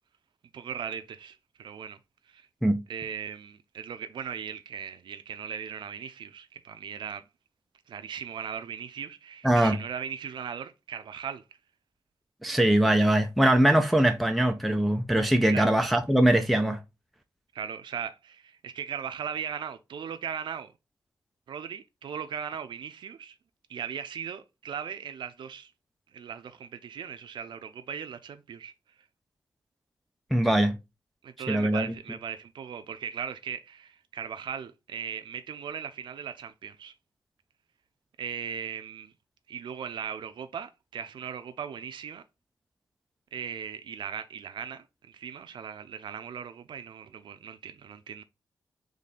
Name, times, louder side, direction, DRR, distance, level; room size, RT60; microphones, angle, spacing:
voice 1, 0.5-2.0 2.3-2.5 2.9-7.2 7.9-11.4 15.5-15.7 17.5-20.7 21.5-23.4 23.7-25.7 26.1-28.7 31.2-36.9 38.2-39.1 39.5-42.2 43.3-48.2, right 7 dB, 80° right, 0.4 m, -38 dB
voice 2, 9.4-9.8 12.4-16.8 30.3-30.8 31.5-31.9, right 1 dB, ahead, 0.4 m, -22 dB
3.6 x 3.2 x 4.0 m
wide cardioid pair, 120°, 8 cm